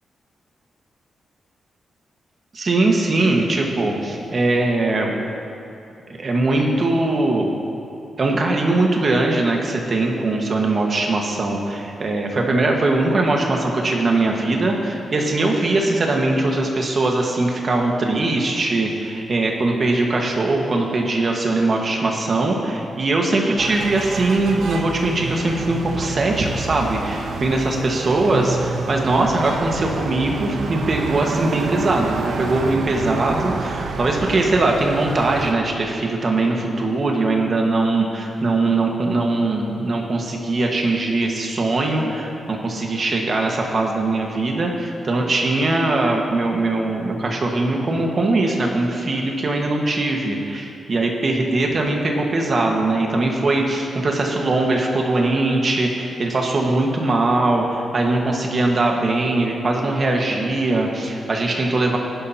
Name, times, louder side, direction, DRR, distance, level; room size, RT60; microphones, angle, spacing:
voice 1, 2.5-5.1 6.1-7.5 8.2-62.0, right 2 dB, 40° right, 0 dB, 1.5 m, -21 dB
sound 1, 23.6-35.5, right 4 dB, 65° right, 0.8 m, -29 dB
17.5 x 11.5 x 2.9 m, 2.7 s
wide cardioid pair, 130°, 0 cm